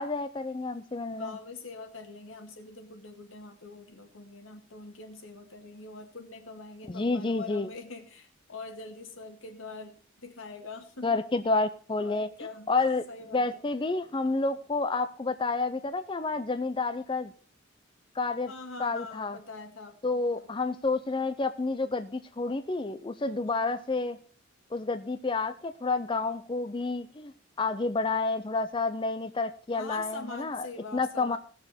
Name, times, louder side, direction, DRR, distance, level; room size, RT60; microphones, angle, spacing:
voice 1, 0.0-1.4 6.9-7.7 11.0-12.3 12.7-13.0 13.3-17.3 18.2-18.5 18.8-19.4 20.0-24.2 24.7-27.3 27.6-30.6 30.9-31.4, left 3 dB, 25° left, 9 dB, 0.5 m, -29 dB
voice 2, 1.2-11.2 12.0-12.7 13.1-13.6 18.4-20.5 23.2-23.7 29.7-31.4, left 3 dB, 80° left, 5 dB, 2.0 m, -44 dB
17.5 x 6.7 x 4.3 m, 0.41 s
head